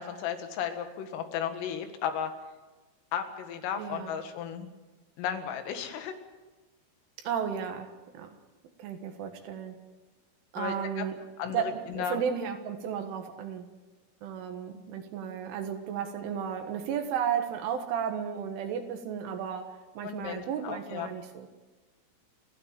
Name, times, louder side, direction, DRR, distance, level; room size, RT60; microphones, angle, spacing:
voice 1, 0.0-2.3 3.1-4.7 5.2-6.1 10.6-11.1 11.4-12.2 20.0-21.1, left 8 dB, 85° left, 7 dB, 4.4 m, -34 dB
voice 2, 3.8-4.2 7.2-8.4 8.8-9.8 10.5-11.2 11.5-13.7 14.2-21.5, right 8 dB, 75° right, 6 dB, 3.9 m, -34 dB
29.5 x 12.5 x 7.5 m, 1.2 s
omnidirectional pair, 5.7 m